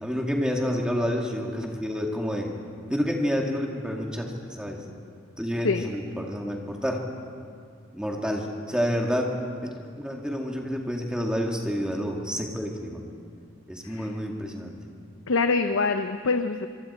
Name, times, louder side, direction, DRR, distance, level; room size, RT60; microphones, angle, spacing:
voice 1, 0.0-2.5 2.9-4.8 5.4-7.0 7.9-9.3 9.6-13.0 13.7-14.8, equal, 5° right, 0 dB, 2.1 m, -29 dB
voice 2, 15.3-16.7, left 4 dB, 80° left, 7 dB, 0.7 m, -25 dB
26.0 x 23.0 x 4.4 m, 2.2 s
head